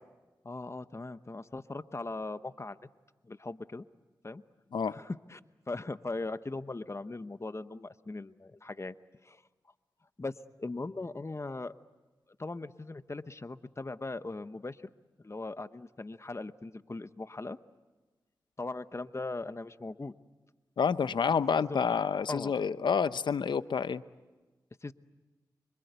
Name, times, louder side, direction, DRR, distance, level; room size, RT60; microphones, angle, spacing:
voice 1, 0.4-2.8 3.2-3.8 4.2-4.4 4.8-5.4 5.7-8.9 9.2-9.4 10.2-10.3 10.6-11.8 12.4-14.8 15.2-17.6 18.6-20.1 21.7-21.9 22.3-22.5 24.8-24.9, left 2 dB, 35° left, 13 dB, 0.9 m, -39 dB
voice 2, 20.8-24.0, left 6 dB, 80° left, 14 dB, 0.8 m, -28 dB
26.0 x 25.0 x 8.2 m, 1.2 s
cardioid pair, 40°, 8 cm